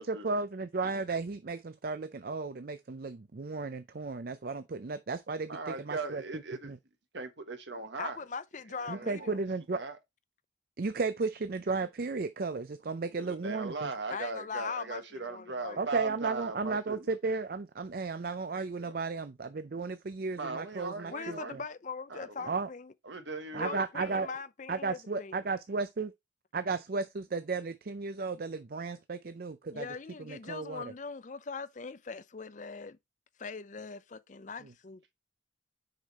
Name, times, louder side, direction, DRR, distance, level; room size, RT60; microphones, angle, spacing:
voice 1, 0.0-6.2 6.6-6.8 8.9-9.8 10.8-13.9 15.8-21.6 22.5-22.7 23.5-24.3 24.7-26.1 26.5-29.9 30.3-30.8, right 4 dB, 50° right, 0.5 m, -34 dB
voice 2, 5.5-6.7 7.1-8.2 8.8-9.3 9.7-10.0 13.2-17.2 18.8-19.0 20.4-21.6 22.1-22.5 23.0-24.3, right 3 dB, 65° right, 1.3 m, -39 dB
voice 3, 8.0-9.4 14.1-15.8 21.1-22.9 23.5-25.4 29.7-33.0 33.4-35.0, left 5 dB, 40° left, 0.5 m, -41 dB
6.6 x 5.1 x 4.1 m
head